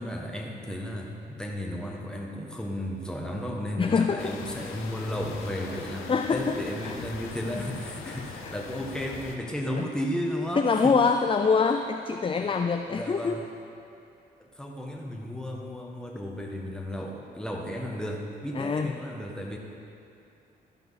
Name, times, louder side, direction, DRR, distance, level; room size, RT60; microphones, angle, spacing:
voice 1, 0.0-10.9 12.4-12.5 12.9-13.4 14.5-19.6, equal, 5° left, -1 dB, 1.7 m, -34 dB
voice 2, 3.8-4.4 6.1-7.0 7.4-7.6 8.1-8.2 8.4-8.5 9.7-9.9 10.5-13.4 18.5-18.9, left 5 dB, 25° left, 5 dB, 0.5 m, -25 dB
sound 1, 4.2-9.4, left 5 dB, 75° left, 0.8 m, -42 dB
13.0 x 5.4 x 4.2 m, 2.7 s
hypercardioid pair, 45°, 21 cm